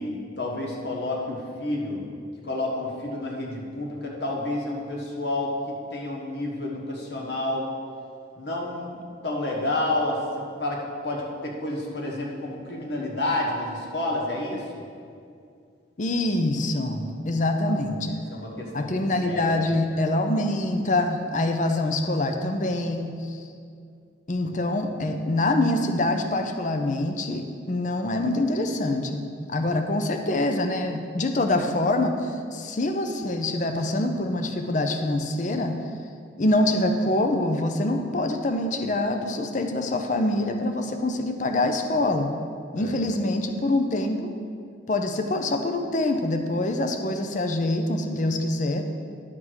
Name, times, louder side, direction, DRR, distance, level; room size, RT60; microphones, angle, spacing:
voice 1, 0.0-2.0 2.4-7.7 8.3-10.2 10.6-14.7 18.3-19.8 42.8-43.0, left 2 dB, 60° left, -2 dB, 1.3 m, -30 dB
voice 2, 16.0-18.2 18.7-23.4 24.3-35.8 36.4-42.3 42.7-44.3 44.9-48.9, left 2 dB, 40° left, 5 dB, 0.6 m, -25 dB
11.0 x 3.7 x 6.3 m, 2.3 s
head